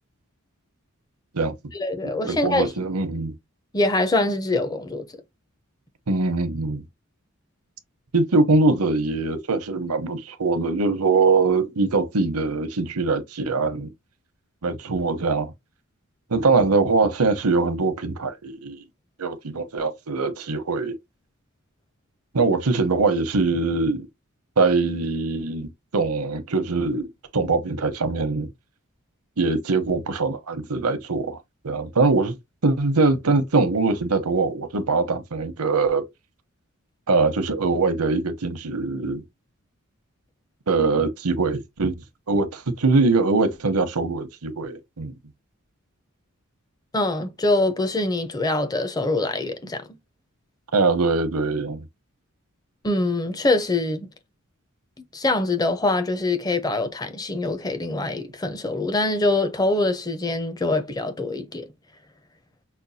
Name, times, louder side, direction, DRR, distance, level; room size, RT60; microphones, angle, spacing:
voice 1, 1.7-2.7 3.7-5.1 46.9-49.8 52.8-54.1 55.1-61.7, left 2 dB, 15° left, 0.6 m, -24 dB
voice 2, 2.3-3.3 6.1-6.8 8.1-13.9 14.6-15.5 16.3-18.8 19.2-20.9 22.3-24.1 24.6-28.5 29.4-31.4 31.6-32.4 32.6-36.0 37.1-39.2 40.7-41.9 42.3-45.1 50.7-51.8, right 3 dB, 90° right, 0.9 m, -22 dB
5.8 x 2.2 x 2.7 m
head